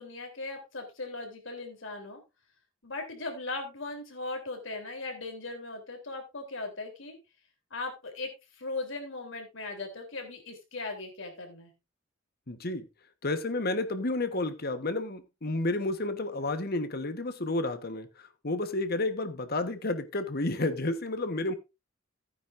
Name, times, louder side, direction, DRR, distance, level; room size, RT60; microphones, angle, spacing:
voice 1, 0.0-2.2 2.8-7.2 7.7-11.7, left 3 dB, 70° left, 3.6 m, -38 dB
voice 2, 12.5-12.8 13.2-21.5, left 2 dB, 50° left, 1.3 m, -31 dB
15.5 x 9.5 x 2.6 m
head